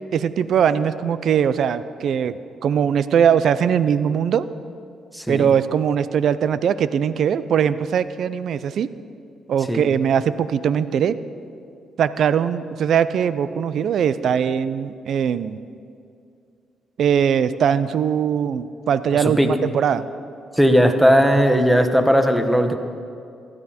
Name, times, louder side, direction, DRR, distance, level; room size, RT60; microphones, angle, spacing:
voice 1, 0.1-4.4 5.3-8.9 9.5-11.2 12.0-15.6 17.0-20.0, right 8 dB, 65° right, 15 dB, 0.5 m, -20 dB
voice 2, 5.1-5.5 9.7-9.8 19.1-19.5 20.5-22.8, equal, ahead, 7 dB, 1.1 m, -17 dB
16.5 x 12.0 x 4.3 m, 2.4 s
cardioid pair, 90°, 0 cm